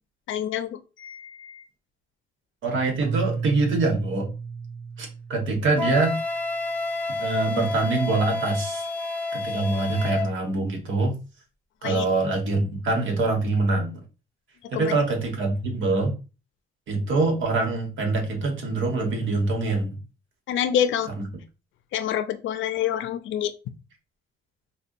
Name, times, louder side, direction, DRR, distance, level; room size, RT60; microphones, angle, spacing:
voice 1, 0.3-1.6 11.8-12.0 14.7-14.9 20.5-21.1 21.9-23.5, left 10 dB, 80° left, 11 dB, 0.5 m, -27 dB
voice 2, 2.6-4.3 5.0-6.2 7.2-8.8 9.3-11.2 11.8-14.0 14.7-16.2 16.9-20.0 21.2-21.3, right 3 dB, 75° right, 3 dB, 1.3 m, -24 dB
Keyboard (musical), 3.0-6.1, right 5 dB, 15° right, 0.5 m, -33 dB
Wind instrument woodwind instrument, 5.8-10.3, left 3 dB, 10° left, 0.9 m, -29 dB
5.4 x 2.3 x 2.6 m, 0.31 s
cardioid pair, 90°, 20 cm